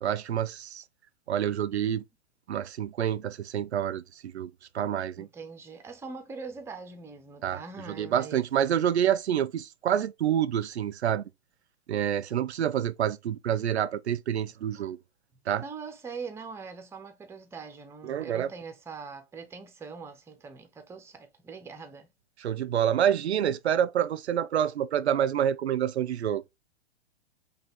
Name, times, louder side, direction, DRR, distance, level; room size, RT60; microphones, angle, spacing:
voice 1, 0.0-0.8 1.3-2.0 2.5-5.3 7.4-7.6 7.9-11.2 11.9-15.0 15.5-15.6 18.0-18.5 22.4-26.4, right 9 dB, 75° right, 0.5 m, -27 dB
voice 2, 5.2-8.5 15.6-22.1, right 5 dB, 10° right, 0.6 m, -42 dB
5.4 x 2.3 x 3.5 m
hypercardioid pair, 115°, 33 cm